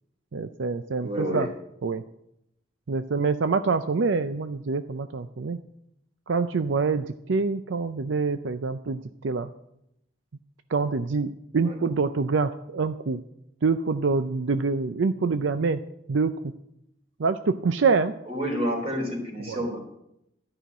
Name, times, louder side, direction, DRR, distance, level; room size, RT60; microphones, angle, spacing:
voice 1, 0.3-1.5 1.8-2.0 2.9-5.6 6.3-9.5 10.7-13.2 13.6-15.8 16.1-16.3 17.2-18.1 19.5-19.6, right 4 dB, 75° right, 10 dB, 0.5 m, -25 dB
voice 2, 1.0-1.5 11.6-11.8 18.3-19.8, equal, 30° right, 1 dB, 3.7 m, -29 dB
13.0 x 5.8 x 9.2 m, 0.79 s
head